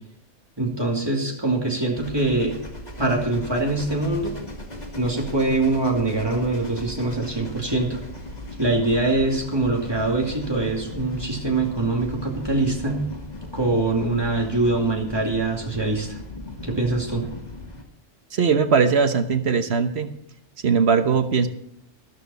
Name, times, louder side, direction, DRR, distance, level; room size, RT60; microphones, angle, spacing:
voice 1, 0.6-2.6 3.0-4.4 5.0-8.0 8.6-13.1 13.5-16.2 16.6-17.3, right 2 dB, 20° right, -1 dB, 2.5 m, -23 dB
sound 1, 2.0-17.8, left 1 dB, 35° left, 1.9 m, -38 dB
voice 2, 18.3-20.1 20.6-21.5, right 5 dB, 60° right, 7 dB, 1.3 m, -20 dB
13.0 x 13.0 x 4.1 m, 0.75 s
omnidirectional pair, 1.3 m